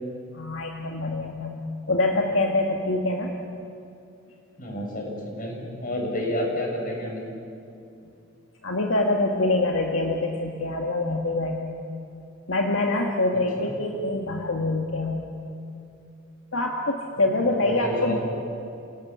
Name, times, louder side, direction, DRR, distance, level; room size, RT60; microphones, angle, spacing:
voice 1, 0.3-1.5 1.9-3.3 8.6-11.7 12.5-15.3 16.5-18.2, left 2 dB, 75° left, 1 dB, 2.0 m, -25 dB
voice 2, 4.6-7.3 13.6-13.7 17.5-18.2, left 1 dB, 45° left, 0 dB, 7.0 m, -30 dB
30.0 x 17.5 x 9.7 m, 2.6 s
head